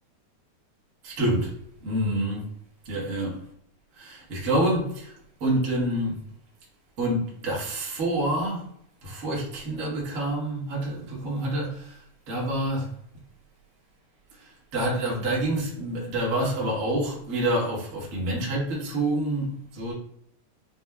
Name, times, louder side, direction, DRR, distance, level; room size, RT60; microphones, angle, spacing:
voice 1, 1.0-1.5 1.8-2.5 2.8-3.4 4.0-5.1 5.4-6.2 7.0-8.6 9.0-12.0 12.3-12.9 14.7-19.9, right 1 dB, 60° right, 0.8 m, -27 dB
6.1 x 2.1 x 2.3 m
omnidirectional pair, 3.4 m